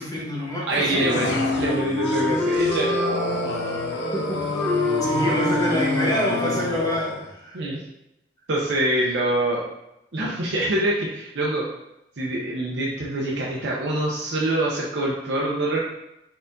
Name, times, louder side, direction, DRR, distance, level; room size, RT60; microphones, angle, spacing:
voice 1, 0.0-1.4 4.1-4.4 5.1-7.6, left 1 dB, 20° left, -4 dB, 1.1 m, -27 dB
sound 1, 0.7-7.3, left 2 dB, 75° left, 0.6 m, -29 dB
voice 2, 0.7-3.8 7.5-7.8 8.5-9.6 10.1-11.6 12.2-15.8, right 1 dB, 90° right, -4 dB, 0.7 m, -25 dB
Wind instrument woodwind instrument, 0.9-6.8, left 1 dB, 5° left, 0.4 m, -27 dB
4.2 x 4.0 x 2.6 m, 0.87 s
head